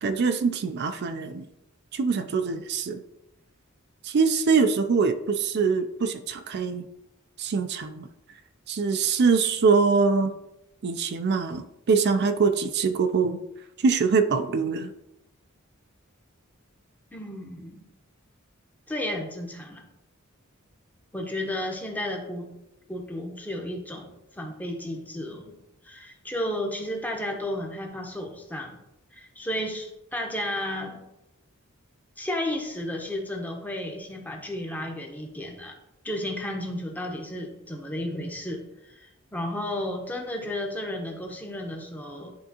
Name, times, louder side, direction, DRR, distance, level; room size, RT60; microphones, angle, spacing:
voice 1, 0.0-1.5 1.9-3.0 4.0-6.9 7.4-8.1 8.7-10.3 10.8-13.4 13.8-14.9, right 5 dB, 50° right, 8 dB, 0.4 m, -23 dB
voice 2, 17.1-17.9 18.9-19.9 21.1-22.5 22.9-24.1 24.3-25.5 25.8-28.8 29.1-31.0 32.2-35.8 36.0-38.6 38.9-42.3, left 1 dB, 10° left, 2 dB, 0.8 m, -33 dB
10.5 x 3.5 x 2.8 m, 0.89 s
head